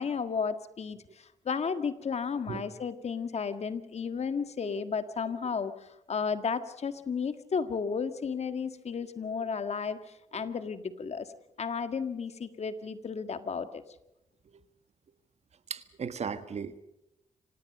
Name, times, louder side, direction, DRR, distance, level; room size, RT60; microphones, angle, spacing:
voice 1, 0.0-11.3 11.6-13.8, left 5 dB, 60° left, 10 dB, 1.7 m, -33 dB
voice 2, 15.7-16.8, right 6 dB, 60° right, 12 dB, 1.6 m, -37 dB
26.0 x 18.0 x 6.7 m, 0.86 s
cardioid pair, 65°, 13 cm